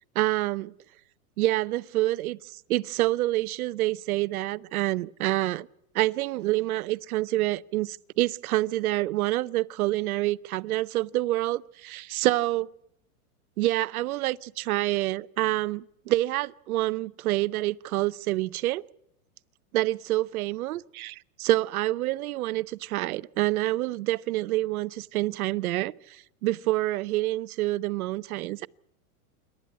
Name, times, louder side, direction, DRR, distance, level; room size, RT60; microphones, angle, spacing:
voice 1, 0.1-0.7 1.4-5.7 5.9-12.7 13.6-18.8 19.7-28.7, right 17 dB, 70° right, 0.7 m, -27 dB
27.0 x 12.5 x 8.6 m
supercardioid pair, 135°, 44 cm